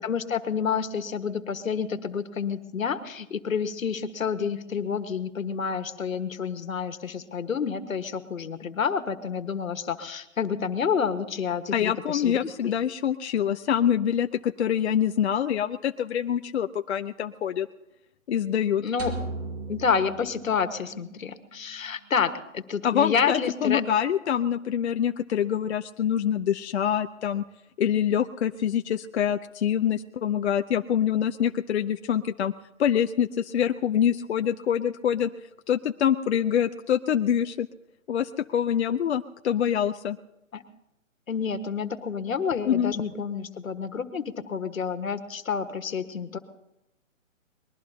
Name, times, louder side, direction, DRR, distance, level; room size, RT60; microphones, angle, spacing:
voice 1, 0.0-12.4 12.6-12.7 18.8-19.1 19.7-23.8 40.5-40.6 41.3-46.4, left 6 dB, 80° left, 9 dB, 1.6 m, -29 dB
voice 2, 11.7-17.7 18.3-18.8 22.8-27.4 27.8-32.5 32.8-35.3 35.7-37.7 38.1-40.2 42.7-42.9, left 9 dB, 55° left, 8 dB, 0.6 m, -25 dB
sound 1, 19.0-21.3, right 3 dB, 20° right, 1.9 m, -37 dB
23.5 x 21.0 x 2.8 m, 0.88 s
hypercardioid pair, 150°, 40 cm